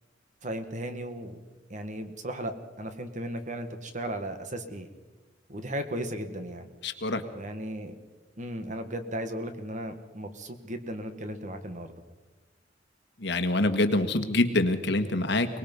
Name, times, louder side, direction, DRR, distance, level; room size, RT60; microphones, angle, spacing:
voice 1, 0.4-1.4 1.7-4.9 5.5-6.7 7.3-7.9 8.4-11.9, right 1 dB, 40° right, 8 dB, 1.7 m, -36 dB
voice 2, 6.8-7.2 13.2-15.6, left 2 dB, 65° left, 8 dB, 1.7 m, -25 dB
24.0 x 20.0 x 5.5 m, 1.2 s
head